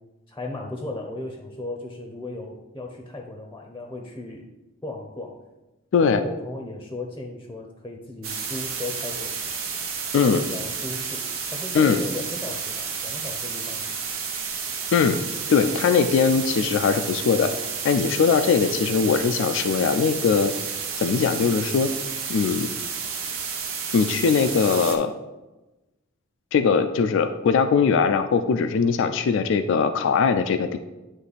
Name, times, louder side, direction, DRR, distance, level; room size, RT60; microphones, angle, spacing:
voice 1, 0.3-4.5 4.8-5.4 6.0-9.5 10.3-13.8, left 2 dB, 15° left, 1 dB, 0.6 m, -36 dB
sound 1, 8.2-25.0, right 6 dB, 90° right, 1.0 m, -31 dB
voice 2, 15.5-17.5 17.8-20.5 21.0-21.9 22.3-22.7 23.9-25.1 26.5-30.8, left 5 dB, 65° left, 9 dB, 0.3 m, -20 dB
9.2 x 3.2 x 4.0 m, 1.1 s
head